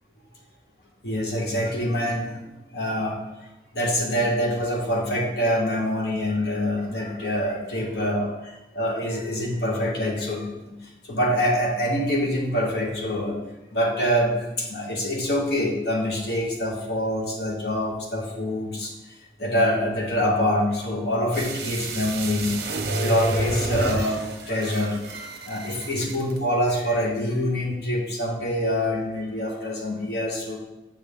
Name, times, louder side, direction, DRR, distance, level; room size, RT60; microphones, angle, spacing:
voice 1, 1.0-2.4 2.7-3.2 3.7-13.4 13.7-19.1 19.4-30.6, equal, 65° left, -1 dB, 1.5 m, -25 dB
sound 1, 21.3-26.4 26.7-26.8, right 2 dB, 65° right, 0.9 m, -29 dB
7.5 x 5.4 x 3.6 m, 0.98 s
head